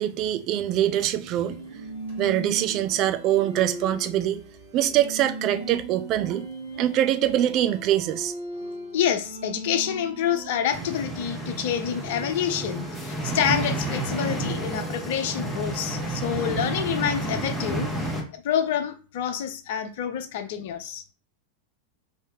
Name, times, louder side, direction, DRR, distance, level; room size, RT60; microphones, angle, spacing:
voice 1, 0.0-1.6 2.2-4.4 4.7-6.5 6.8-8.3, right 12 dB, 40° right, 0.4 m, -24 dB
sound 1, 1.1-16.2, right 2 dB, 65° right, 1.4 m, -40 dB
voice 2, 8.9-18.1 18.3-21.0, left 9 dB, 50° left, 0.5 m, -27 dB
sound 2, 10.7-18.2, right 2 dB, ahead, 1.0 m, -30 dB
3.2 x 2.7 x 3.5 m
figure-of-eight pair, 90°, 0 cm